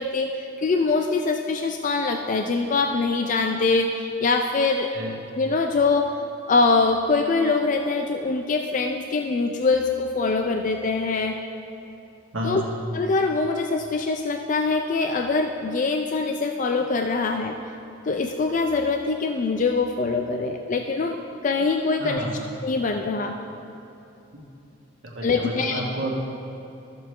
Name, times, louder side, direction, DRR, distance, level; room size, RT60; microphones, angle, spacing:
voice 1, 0.0-4.9 5.4-6.1 6.5-11.4 12.4-12.6 12.9-17.6 18.1-22.3 22.6-23.4 25.2-25.8, left 3 dB, 40° left, 4 dB, 0.4 m, -23 dB
voice 2, 12.3-12.8 22.0-22.4 25.0-26.1, equal, 65° right, -2 dB, 1.5 m, -30 dB
13.5 x 6.8 x 3.2 m, 2.8 s
head